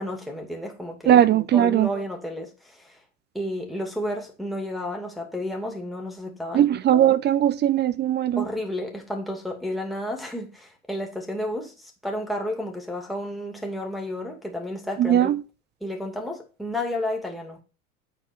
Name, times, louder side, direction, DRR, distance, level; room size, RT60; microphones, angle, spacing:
voice 1, 0.0-1.2 1.5-3.0 3.3-6.7 8.4-15.3 15.8-17.6, left 1 dB, ahead, 2.5 m, -31 dB
voice 2, 1.1-1.9 6.5-8.4 15.0-15.4, right 11 dB, 25° right, 0.5 m, -19 dB
9.5 x 4.4 x 4.6 m
hypercardioid pair, 95°, 43 cm